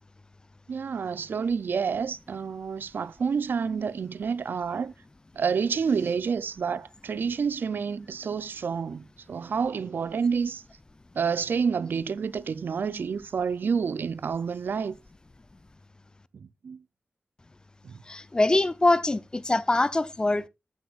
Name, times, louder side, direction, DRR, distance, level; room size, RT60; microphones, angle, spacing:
voice 1, 0.7-4.9 5.4-10.6 11.1-15.0 16.3-16.8 17.8-18.0, right 6 dB, 80° right, 0.5 m, -29 dB
voice 2, 18.1-20.5, left 2 dB, 25° left, 0.6 m, -23 dB
13.5 x 9.4 x 2.4 m
wide cardioid pair, 105°, 3 cm